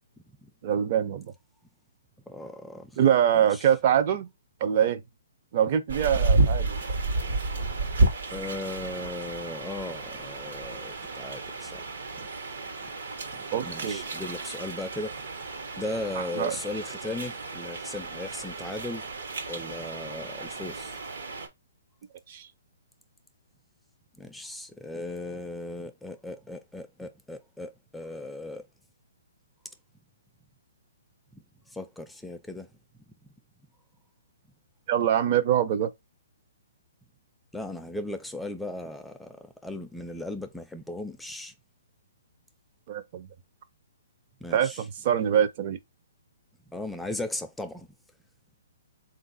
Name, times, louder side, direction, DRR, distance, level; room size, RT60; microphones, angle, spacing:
voice 1, 0.6-1.3 3.0-4.3 4.6-5.0 5.5-6.8 13.5-14.1 16.2-16.6 22.3-22.4 34.9-35.9 42.9-43.3 44.5-45.8, right 9 dB, 40° right, 0.6 m, -24 dB
voice 2, 2.3-2.9 3.3-3.7 8.3-12.3 13.3-15.2 15.8-19.1 19.5-21.0 24.2-28.6 31.3-31.4 31.7-32.7 37.5-41.5 44.4-44.9 46.7-47.9, left 2 dB, 5° left, 0.4 m, -37 dB
sound 1, 5.9-21.5, right 2 dB, 75° right, 1.1 m, -31 dB
3.7 x 2.6 x 3.9 m
hypercardioid pair, 145°, 0 cm